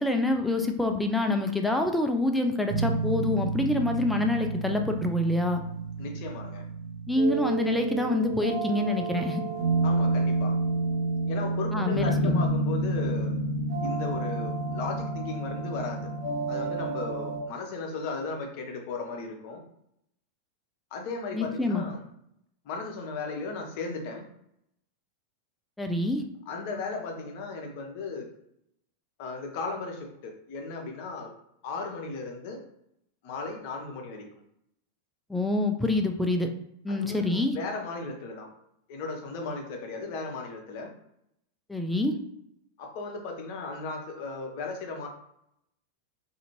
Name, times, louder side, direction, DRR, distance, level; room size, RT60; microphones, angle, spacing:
voice 1, 0.0-5.6 7.1-9.4 11.7-12.4 21.3-21.8 25.8-26.2 35.3-36.5 36.8-37.6 41.7-42.2, left 2 dB, 5° left, 4 dB, 0.4 m, -26 dB
sound 1, 2.7-17.4, right 2 dB, 35° right, 0.8 m, -29 dB
voice 2, 6.0-6.6 9.8-10.6 11.3-13.3 13.8-16.1 16.5-19.6 20.9-22.0 22.6-24.3 26.5-28.3 29.2-31.3 31.6-32.6 33.2-34.3 36.9-38.5 38.9-40.9 42.8-45.1, left 3 dB, 45° left, 2 dB, 0.6 m, -36 dB
2.7 x 2.5 x 2.8 m, 0.77 s
figure-of-eight pair, 90°, 0 cm